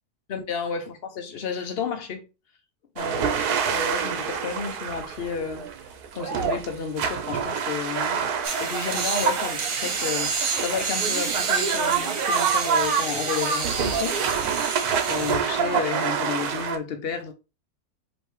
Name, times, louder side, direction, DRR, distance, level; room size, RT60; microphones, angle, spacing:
voice 1, 0.3-2.3 3.0-3.4 3.7-5.7 6.1-8.3 8.6-14.2 15.0-17.3, left 6 dB, 45° left, 0.9 m, -31 dB
sound 1, 3.0-16.8, right 6 dB, 80° right, 1.2 m, -27 dB
sound 2, 8.4-15.4, right 5 dB, 60° right, 1.3 m, -29 dB
5.2 x 3.2 x 3.2 m
omnidirectional pair, 1.6 m